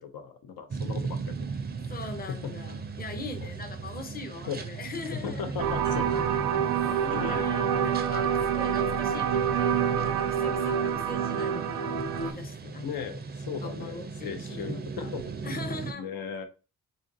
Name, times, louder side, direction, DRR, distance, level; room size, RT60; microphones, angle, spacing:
voice 1, 0.0-1.3 2.3-2.4 3.4-3.5 4.5-4.6 5.1-6.2 6.8-7.4 12.8-15.6 15.9-16.4, left 6 dB, 75° left, 7 dB, 0.6 m, -37 dB
sound 1, 0.7-15.9, right 4 dB, 30° right, 0.4 m, -38 dB
voice 2, 1.9-5.6 6.7-12.9 13.6-15.1 15.4-16.1, left 3 dB, 25° left, 7 dB, 0.6 m, -41 dB
sound 2, 5.6-12.3, right 8 dB, 80° right, 0.5 m, -27 dB
3.7 x 2.5 x 2.6 m, 0.33 s
cardioid pair, 65°, 36 cm